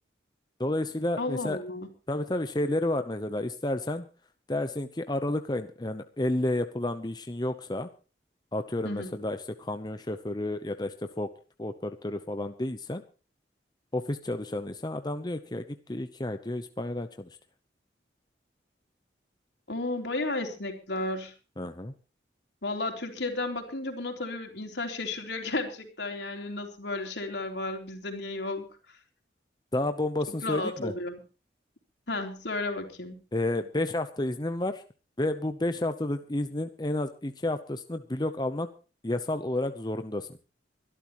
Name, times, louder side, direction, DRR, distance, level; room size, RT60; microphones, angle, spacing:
voice 1, 0.6-1.6 2.1-4.1 4.5-7.9 8.5-11.3 11.6-13.0 13.9-17.3 21.6-21.9 29.7-30.9 33.3-34.8 35.2-38.7 39.0-40.4, left 1 dB, 25° left, 8 dB, 0.8 m, -31 dB
voice 2, 1.2-1.9 8.8-9.2 19.7-21.3 22.6-28.7 30.4-31.2 32.1-33.2, left 2 dB, 75° left, 4 dB, 3.6 m, -33 dB
24.0 x 12.5 x 3.1 m, 0.34 s
head